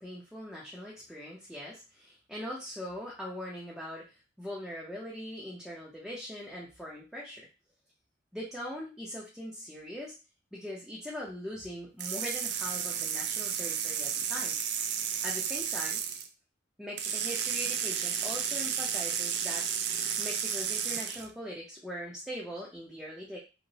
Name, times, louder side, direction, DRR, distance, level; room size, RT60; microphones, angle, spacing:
voice 1, 0.0-7.5 8.3-10.1 10.5-14.8 15.2-16.0 16.8-19.7 20.2-23.4, equal, ahead, -6 dB, 0.5 m, -41 dB
sound 1, 12.0-16.3 17.0-21.3, right 8 dB, 65° right, 0.3 m, -32 dB
2.9 x 2.0 x 2.6 m, 0.30 s
head